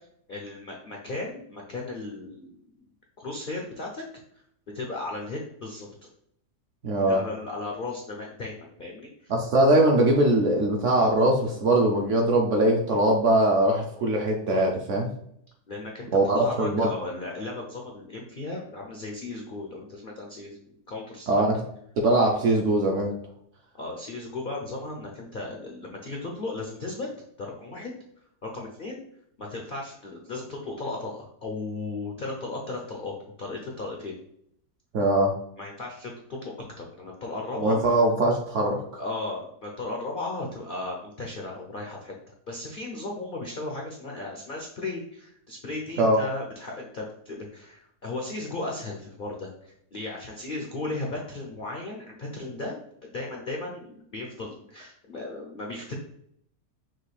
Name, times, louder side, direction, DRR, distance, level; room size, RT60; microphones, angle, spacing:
voice 1, 0.3-2.6 3.2-4.0 4.7-5.9 7.1-9.3 15.7-16.1 16.3-20.6 20.9-21.4 23.7-27.1 27.4-27.9 28.4-29.0 29.4-34.1 35.6-37.8 39.0-42.1 42.5-55.9, left 2 dB, 80° left, -1 dB, 0.4 m, -36 dB
voice 2, 6.8-7.2 9.3-15.1 16.1-16.9 21.3-21.6 22.0-23.1 34.9-35.3 37.6-38.8 46.0-46.2, right 1 dB, 65° right, 0 dB, 0.7 m, -21 dB
5.9 x 2.4 x 3.2 m, 0.70 s
omnidirectional pair, 1.8 m